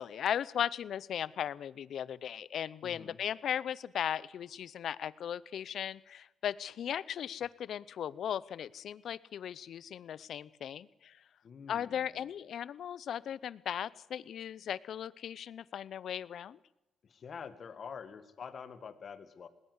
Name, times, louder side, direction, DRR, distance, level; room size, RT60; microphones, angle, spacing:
voice 1, 0.0-11.2 11.7-16.6, left 9 dB, 70° left, 21 dB, 0.7 m, -37 dB
voice 2, 2.8-3.2 11.4-12.3 17.0-19.5, left 6 dB, 55° left, 12 dB, 1.9 m, -47 dB
19.0 x 19.0 x 8.1 m, 0.98 s
cardioid pair, 85°, 0 cm